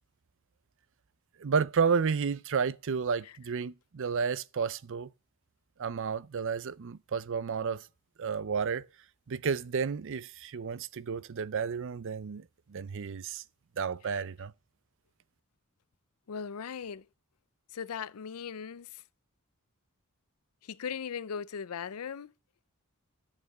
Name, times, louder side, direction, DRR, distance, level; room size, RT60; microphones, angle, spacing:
voice 1, 1.4-5.1 5.8-7.9 8.2-8.9 9.3-13.4 13.8-14.5, right 6 dB, 60° right, 0.5 m, -31 dB
voice 2, 16.3-17.0 17.7-19.0 20.6-22.3, left 7 dB, 80° left, 0.5 m, -38 dB
11.5 x 6.7 x 6.6 m
head